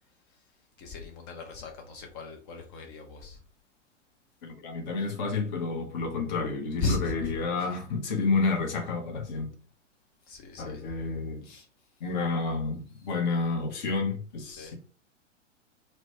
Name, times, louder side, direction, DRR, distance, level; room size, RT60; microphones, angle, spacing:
voice 1, 0.8-3.4 6.8-7.1 10.3-10.8 11.4-11.7 14.6-14.7, left 3 dB, 20° left, 0.4 m, -36 dB
voice 2, 4.4-9.5 10.6-11.5 12.0-14.7, left 4 dB, 35° left, 0.8 m, -30 dB
2.9 x 2.1 x 2.7 m
figure-of-eight pair, 105°, 37 cm